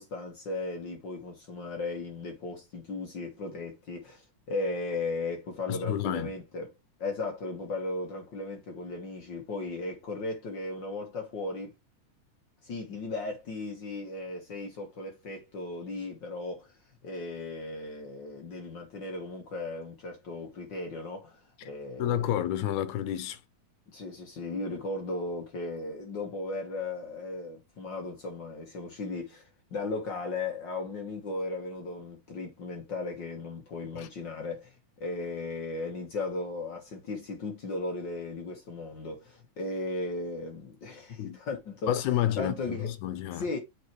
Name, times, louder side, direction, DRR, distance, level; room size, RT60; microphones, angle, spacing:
voice 1, 0.0-6.7 7.0-11.7 12.6-16.7 17.0-22.3 23.9-42.0 42.3-42.9 43.3-43.6, left 3 dB, 50° left, 1.7 m, -36 dB
voice 2, 5.7-6.3 22.0-23.4 34.0-34.1 41.2-41.4 41.9-43.5, left 11 dB, 85° left, 2.2 m, -30 dB
7.7 x 4.9 x 3.1 m
omnidirectional pair, 3.3 m